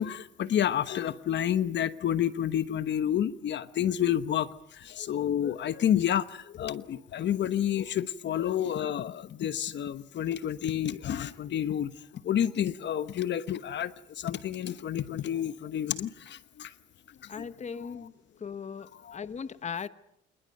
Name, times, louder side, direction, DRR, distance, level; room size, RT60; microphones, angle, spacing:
voice 1, 0.0-16.7 17.4-17.5 19.0-19.2, left 10 dB, 65° left, 1.1 m, -29 dB
voice 2, 17.3-18.1 18.4-19.9, left 6 dB, 35° left, 1.0 m, -38 dB
26.5 x 20.0 x 7.8 m
cardioid pair, 90°, 20 cm